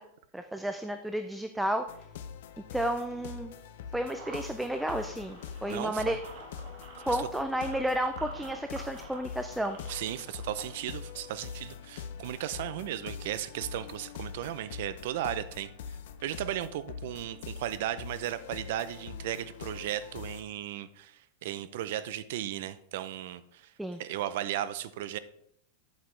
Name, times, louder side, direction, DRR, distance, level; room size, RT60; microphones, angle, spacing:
voice 1, 0.3-1.9 2.7-3.5 3.9-6.2 7.0-9.8 23.8-24.0, right 1 dB, ahead, 7 dB, 0.3 m, -32 dB
sound 1, 1.9-20.4, left 7 dB, 60° left, 0.7 m, -44 dB
sound 2, 4.0-10.8, right 4 dB, 35° right, 1.6 m, -48 dB
voice 2, 5.7-6.2 7.1-7.3 9.9-15.7 16.2-23.7 24.0-25.2, right 12 dB, 55° right, 14 dB, 0.5 m, -36 dB
8.1 x 8.1 x 3.2 m, 0.73 s
supercardioid pair, 170°, 0 cm